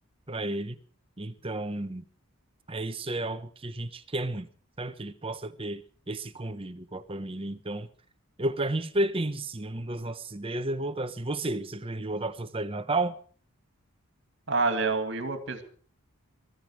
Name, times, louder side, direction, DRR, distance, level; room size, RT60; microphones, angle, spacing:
voice 1, 0.3-0.8 1.2-2.0 2.7-4.5 4.8-7.9 8.4-13.1, right 2 dB, 25° right, 0.9 m, -32 dB
voice 2, 14.5-15.6, right 3 dB, 55° right, 2.4 m, -27 dB
21.0 x 14.0 x 4.8 m
head